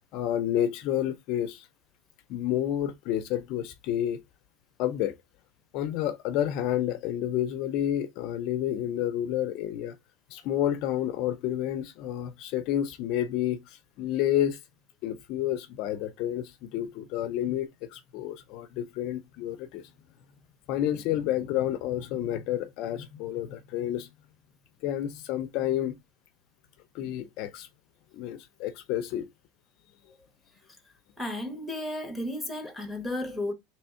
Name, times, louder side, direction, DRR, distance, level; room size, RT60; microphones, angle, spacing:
voice 1, 0.1-1.7 2.3-4.2 4.8-5.2 5.7-10.0 10.3-14.6 15.0-19.9 20.7-24.1 24.8-26.0 26.9-27.7 28.1-29.3, left 11 dB, 40° left, 0.4 m, -30 dB
voice 2, 31.2-33.5, left 1 dB, ahead, 0.7 m, -33 dB
3.4 x 3.0 x 4.2 m
supercardioid pair, 175°, 0 cm